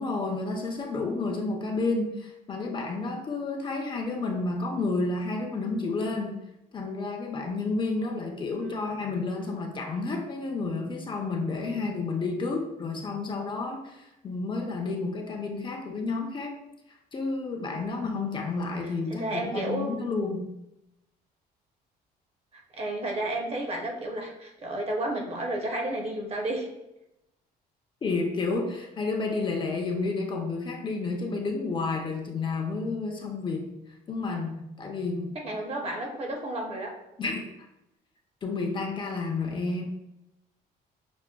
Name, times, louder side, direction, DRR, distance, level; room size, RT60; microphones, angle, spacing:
voice 1, 0.0-6.4 6.7-16.6 17.1-20.5 28.0-33.8 34.1-35.4 37.2-37.5 38.4-39.8, left 3 dB, 30° left, 2 dB, 0.5 m, -30 dB
voice 2, 8.6-9.0 19.2-19.9 22.7-26.7 35.4-36.9, right 1 dB, 35° right, 1 dB, 0.8 m, -32 dB
5.9 x 2.1 x 2.2 m, 0.88 s
cardioid pair, 110°, 17 cm